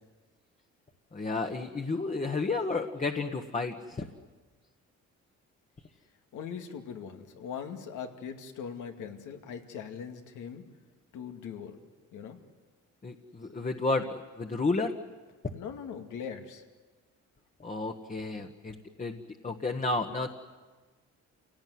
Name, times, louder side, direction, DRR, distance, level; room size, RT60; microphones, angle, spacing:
voice 1, 1.1-4.1 13.0-14.9 17.6-19.2 19.4-20.3, left 3 dB, 25° left, 4 dB, 1.5 m, -31 dB
voice 2, 6.3-10.6 11.1-11.8 12.1-12.4 15.5-16.6, left 7 dB, 85° left, 5 dB, 2.4 m, -40 dB
28.0 x 18.0 x 9.6 m, 1.4 s
cardioid pair, 90°, 30 cm